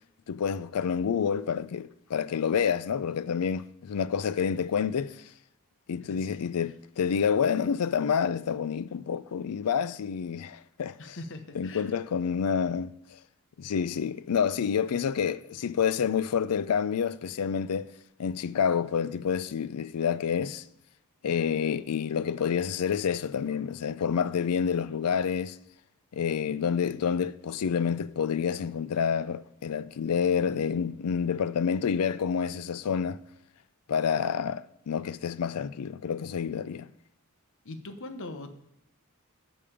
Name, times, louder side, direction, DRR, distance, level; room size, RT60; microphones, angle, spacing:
voice 1, 0.3-5.2 5.9-11.2 11.6-12.9 13.6-17.9 18.2-20.6 21.2-25.6 26.1-33.2 33.9-36.9, left 7 dB, 90° left, 0.4 m, -28 dB
voice 2, 11.0-11.9 37.6-38.5, left 2 dB, 60° left, 1.0 m, -41 dB
8.6 x 5.2 x 7.0 m
head